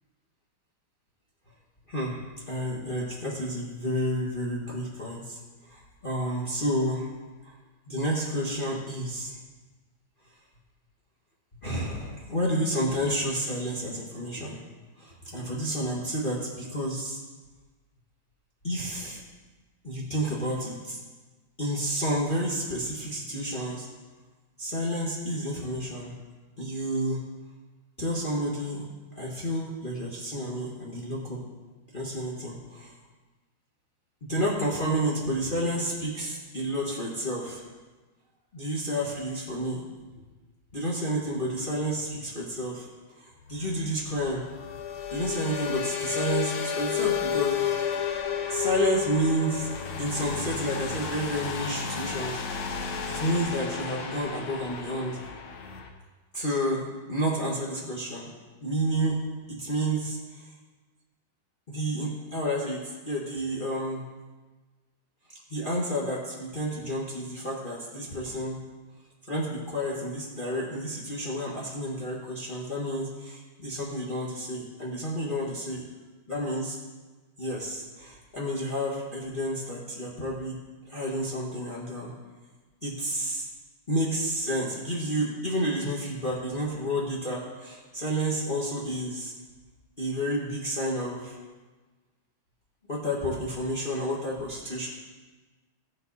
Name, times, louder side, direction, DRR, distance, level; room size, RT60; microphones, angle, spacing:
voice 1, 1.9-7.1 7.4-7.5 7.9-9.3 11.6-14.6 15.0-17.2 18.6-19.2 19.8-21.0 21.6-23.9 24.6-26.1 26.6-27.2 28.0-28.8 29.1-31.4 31.9-33.0 34.3-37.6 38.5-39.8 40.1-40.2 40.7-42.9 43.1-44.4 45.1-48.0 48.5-49.7 50.0-52.7 53.1-55.2 56.3-58.3 58.6-59.2 59.5-60.5 61.7-64.0 65.5-68.6 69.3-75.8 76.3-76.8 77.4-80.6 80.9-82.1 82.8-83.5 83.9-89.3 90.0-91.4 92.9-94.9, equal, 25° left, -5 dB, 1.6 m, -30 dB
sound 1, 43.5-55.9, left 7 dB, 85° left, 1.9 m, -32 dB
15.5 x 7.8 x 4.1 m, 1.3 s
omnidirectional pair, 2.2 m